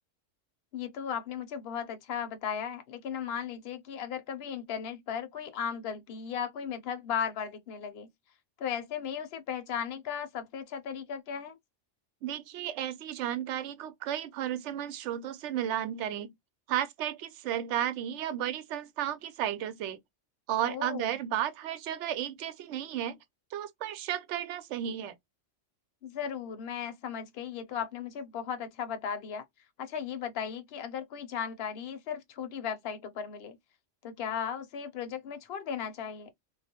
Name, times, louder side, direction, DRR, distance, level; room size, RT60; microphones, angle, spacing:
voice 1, 0.7-8.1 8.6-11.6 20.7-21.2 26.0-29.4 29.8-33.6 34.0-36.3, left 7 dB, 60° left, 0.8 m, -36 dB
voice 2, 12.2-16.3 16.7-20.0 20.5-23.2 23.5-25.1, right 11 dB, 70° right, 0.8 m, -33 dB
2.4 x 2.0 x 2.7 m
omnidirectional pair, 1.3 m